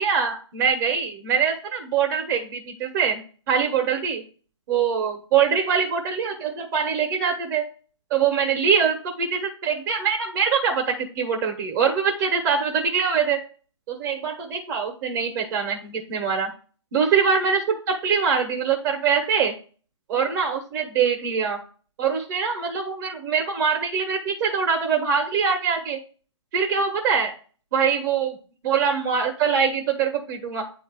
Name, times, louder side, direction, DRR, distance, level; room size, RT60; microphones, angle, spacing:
voice 1, 0.0-4.2 4.7-7.6 8.1-13.4 13.9-16.5 16.9-19.5 20.1-21.6 22.0-26.0 26.5-27.3 27.7-28.4 28.6-30.6, right 6 dB, 40° right, 3 dB, 1.6 m, -23 dB
9.3 x 3.2 x 4.9 m, 0.39 s
figure-of-eight pair, 135°, 16 cm